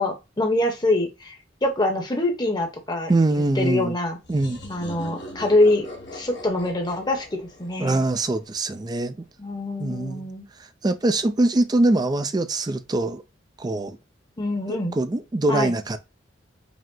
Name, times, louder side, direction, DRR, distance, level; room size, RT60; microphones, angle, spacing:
voice 1, 0.0-1.3 1.6-3.1 3.6-4.2 4.7-5.9 6.1-8.1 9.4-10.4 14.4-15.0 15.5-15.8, left 2 dB, 25° left, 0.9 m, -24 dB
voice 2, 3.1-3.9 4.3-4.6 7.8-9.3 9.8-10.3 10.8-13.2 13.6-14.0 14.7-16.0, right 2 dB, 20° right, 0.4 m, -23 dB
sound 1, 4.2-8.8, left 1 dB, 65° left, 1.1 m, -41 dB
5.1 x 2.1 x 3.7 m
head